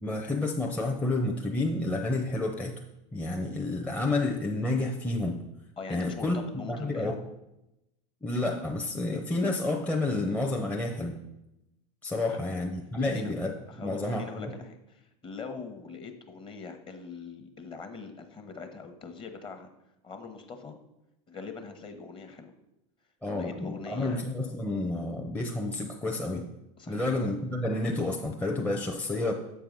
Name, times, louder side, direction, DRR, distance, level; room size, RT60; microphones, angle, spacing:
voice 1, 0.0-2.8 3.1-5.4 5.9-6.4 6.7-7.2 8.2-11.2 12.0-13.5 13.8-14.6 23.2-26.5 26.9-29.3, left 2 dB, 10° left, 1 dB, 0.7 m, -30 dB
voice 2, 5.8-7.1 12.3-12.4 13.0-13.3 13.7-19.7 20.0-20.8 21.3-22.5 23.2-24.2 26.8-27.1, left 4 dB, 30° left, 6 dB, 1.1 m, -42 dB
7.0 x 4.7 x 5.3 m, 0.90 s
supercardioid pair, 105°, 18 cm